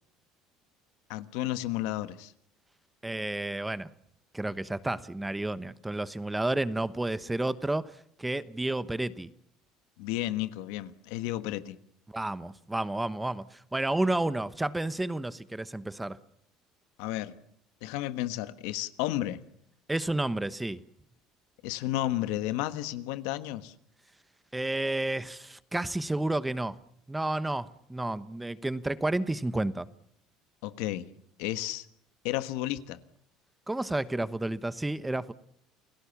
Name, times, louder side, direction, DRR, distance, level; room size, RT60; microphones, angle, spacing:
voice 1, 1.1-2.3 10.0-11.8 17.0-17.3 17.8-19.4 21.6-23.7 30.6-31.1 31.4-31.9 32.2-33.0, left 15 dB, 80° left, 1.3 m, -32 dB
voice 2, 3.0-3.9 4.3-9.3 12.1-16.2 19.9-20.8 24.5-26.8 27.1-29.9 33.7-35.3, right 2 dB, 10° right, 1.0 m, -31 dB
29.0 x 17.0 x 7.2 m
supercardioid pair, 100°, 0 cm